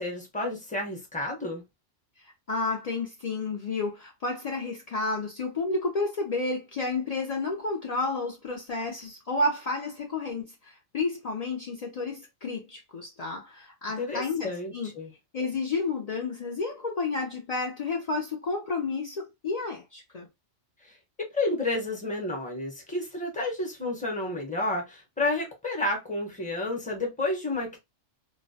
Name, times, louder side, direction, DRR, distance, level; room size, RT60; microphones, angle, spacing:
voice 1, 0.0-1.6 14.0-15.1 20.8-21.0 21.3-27.8, left 2 dB, 10° left, 0.6 m, -31 dB
voice 2, 2.5-14.9 15.3-20.3, left 3 dB, 65° left, 0.3 m, -31 dB
2.3 x 2.1 x 2.6 m
omnidirectional pair, 1.3 m